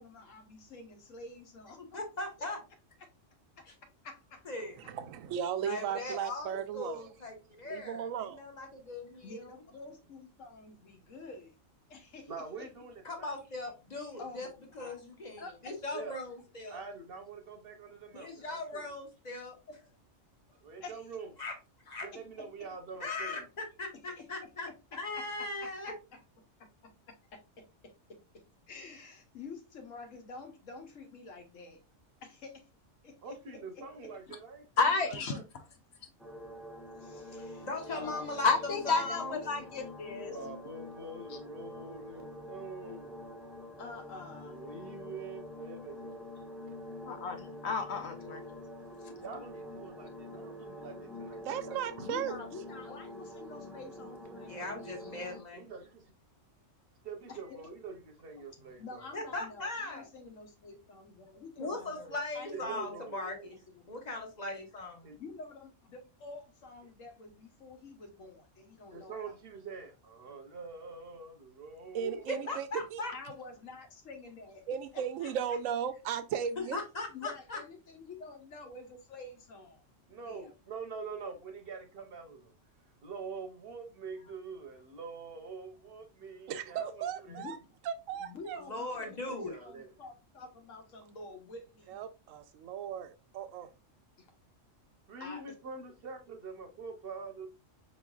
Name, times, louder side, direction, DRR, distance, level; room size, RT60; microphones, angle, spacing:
voice 1, 0.0-2.0 3.0-3.1 4.0-4.5 9.2-11.5 11.9-12.3 12.6-12.7 14.2-14.9 15.4-15.7 16.6-16.7 20.8-21.1 22.1-22.5 24.2-24.3 25.6-26.2 26.8-26.9 27.3-31.8 32.2-32.7 33.0-34.1 37.0-38.5 38.9-39.2 43.8-44.5 50.0-50.1 51.3-51.4 52.0-54.7 57.3-57.4 58.4-58.5 58.8-63.3 63.7-63.8 65.1-69.4 72.0-72.1 73.1-74.6 74.9-75.6 77.1-79.9 80.2-80.5 87.3-87.6 88.2-92.0 94.2-94.3 95.2-95.5, left 3 dB, 80° left, 1.3 m, -49 dB
voice 2, 1.9-2.6 3.6-3.7 4.4-4.8 5.6-9.5 13.0-14.5 14.7-16.8 18.1-19.6 21.4-21.5 21.8-22.1 23.0-25.9 37.6-39.4 54.5-55.6 59.1-60.1 61.6-63.5 63.9-65.1 72.3-73.1 76.7-77.6 88.6-89.6, left 2 dB, 35° left, 1.1 m, -39 dB
voice 3, 4.9-7.1 7.7-8.4 51.4-52.4 71.9-73.0 74.7-76.8 86.5-87.6 87.9-88.6 91.9-93.7, right 8 dB, 85° right, 0.9 m, -36 dB
voice 4, 12.3-13.3 15.9-16.2 16.7-18.8 20.6-21.3 22.0-23.4 33.2-34.6 34.9-35.4 40.3-43.2 44.5-46.4 49.2-52.1 55.5-56.1 57.0-59.4 62.5-63.5 65.0-65.1 68.9-72.3 80.1-82.5 83.0-87.4 88.7-89.9 95.1-97.5, right 4 dB, 55° right, 0.9 m, -45 dB
voice 5, 34.8-35.4 38.4-40.3 47.1-48.4, left 4 dB, 60° left, 1.0 m, -31 dB
sound 1, 36.2-55.4, left 1 dB, ahead, 0.4 m, -46 dB
4.8 x 3.1 x 2.3 m
omnidirectional pair, 1.3 m